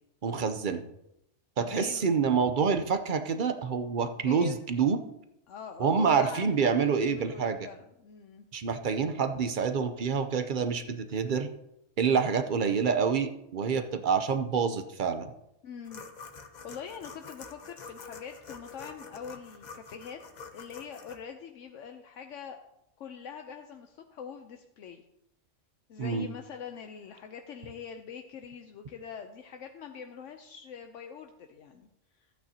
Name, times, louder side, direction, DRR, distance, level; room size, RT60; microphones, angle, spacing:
voice 1, 0.2-0.9 1.6-5.0 5.8-7.7 8.5-11.5 12.0-15.3 26.0-26.3, right 6 dB, 50° right, 8 dB, 0.7 m, -27 dB
voice 2, 1.6-2.1 4.3-4.6 5.5-8.4 15.6-16.0 16.6-20.2 20.5-22.6 23.0-25.0 25.9-31.9, left 7 dB, 75° left, 5 dB, 1.0 m, -43 dB
sound 1, 15.8-21.2, left 5 dB, 40° left, 0.8 m, -47 dB
13.5 x 8.6 x 2.8 m, 0.82 s
omnidirectional pair, 1.3 m